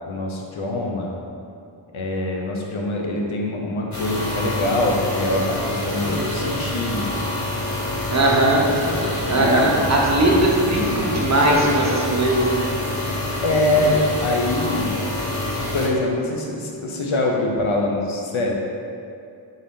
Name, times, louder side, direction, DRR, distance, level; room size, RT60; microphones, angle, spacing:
voice 1, 0.0-1.1 1.9-7.1 9.4-9.6 13.4-14.9 15.7-18.5, left 1 dB, 80° left, 0 dB, 0.7 m, -24 dB
sound 1, 3.9-15.9, left 1 dB, 35° left, 0.7 m, -26 dB
voice 2, 8.1-8.6 9.3-12.7, right 1 dB, 35° right, -3 dB, 0.7 m, -19 dB
3.9 x 2.6 x 3.5 m, 2.5 s
wide cardioid pair, 55°, 48 cm